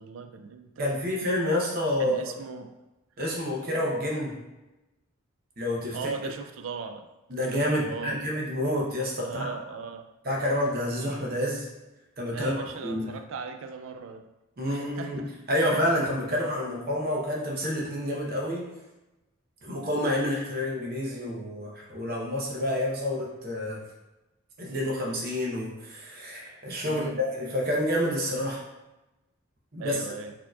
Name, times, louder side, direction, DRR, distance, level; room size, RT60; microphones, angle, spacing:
voice 1, 0.0-1.1 2.0-2.8 5.9-7.1 7.5-8.2 9.2-10.1 12.3-14.3 14.6-15.3 15.6-15.8 26.8-27.2 29.8-30.3, right 5 dB, 75° right, 7 dB, 0.3 m, -38 dB
voice 2, 0.8-2.2 3.2-4.4 5.6-6.0 7.3-9.5 10.2-11.7 12.2-13.1 14.6-18.7 19.6-23.8 24.6-28.6 29.7-30.0, left 1 dB, 50° right, -2 dB, 0.8 m, -28 dB
4.4 x 2.9 x 2.3 m, 1.0 s
head